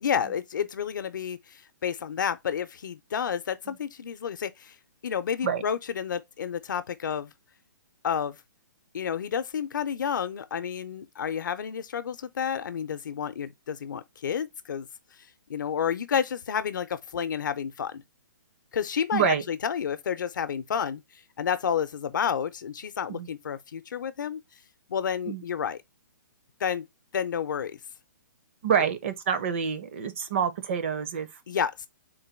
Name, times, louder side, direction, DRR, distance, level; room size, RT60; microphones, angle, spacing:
voice 1, 0.0-4.7 5.0-7.3 8.0-8.4 8.9-14.9 15.5-18.0 18.7-21.0 21.4-24.4 24.9-25.8 26.6-26.9 27.1-27.8 31.5-31.9, left 8 dB, 70° left, 0.6 m, -30 dB
voice 2, 19.1-19.4 23.1-23.3 25.3-25.4 28.6-31.3, right 7 dB, 35° right, 0.6 m, -27 dB
3.9 x 2.2 x 4.3 m
hypercardioid pair, 170°, 11 cm